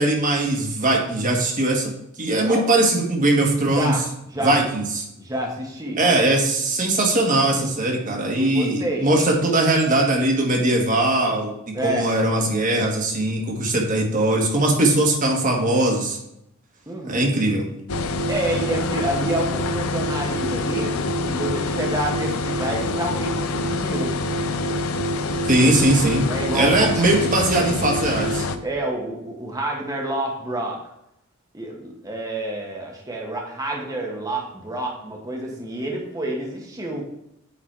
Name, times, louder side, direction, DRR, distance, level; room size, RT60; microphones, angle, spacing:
voice 1, 0.0-1.9 2.2-3.9 4.4-5.0 6.0-11.5 11.8-16.2 17.0-17.7 25.4-26.3 26.5-28.4, right 2 dB, 40° right, 1 dB, 1.4 m, -20 dB
voice 2, 3.7-4.0 4.3-4.6 5.2-6.0 8.3-9.1 11.7-12.1 16.9-17.3 18.3-20.9 21.3-24.2 26.3-26.8 28.6-30.8 31.5-37.1, right 1 dB, 15° right, -1 dB, 1.2 m, -28 dB
sound 1, 17.9-28.6, left 2 dB, 75° left, 0.6 m, -25 dB
8.6 x 4.0 x 4.5 m, 0.81 s
head